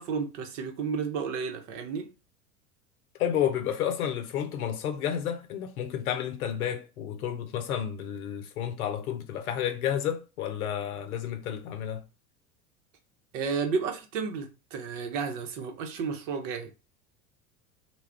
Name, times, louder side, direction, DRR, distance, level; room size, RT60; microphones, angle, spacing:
voice 1, 0.0-2.1 13.3-16.7, right 5 dB, 55° right, 0.8 m, -32 dB
voice 2, 3.2-12.0, left 9 dB, 70° left, 0.7 m, -31 dB
2.3 x 2.1 x 3.4 m
figure-of-eight pair, 80°, 46 cm